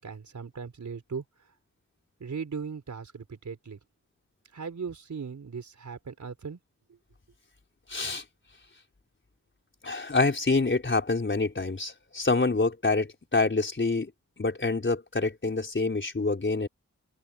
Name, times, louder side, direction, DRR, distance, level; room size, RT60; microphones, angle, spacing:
voice 1, 0.0-1.2 2.2-3.8 4.5-6.6 6.9-7.0, right 5 dB, 75° right, 4.6 m, -38 dB
voice 2, 7.9-8.2 9.8-14.1 14.4-16.7, left 3 dB, 40° left, 4.6 m, -26 dB
open air
wide cardioid pair, 65°, 29 cm